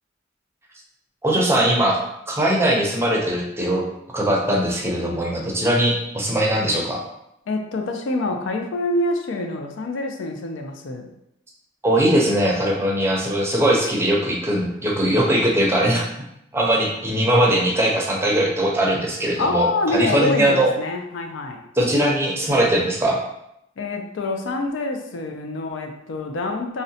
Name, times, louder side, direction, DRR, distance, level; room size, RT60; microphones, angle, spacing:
voice 1, 1.2-2.0 2.3-3.8 4.1-7.0 11.8-16.0 16.5-19.7 19.9-20.7 21.8-23.2, right 1 dB, 15° right, -2 dB, 0.5 m, -20 dB
voice 2, 7.5-11.1 19.4-21.6 23.8-26.8, left 2 dB, 75° left, 4 dB, 0.4 m, -26 dB
3.7 x 2.1 x 2.7 m, 0.79 s
head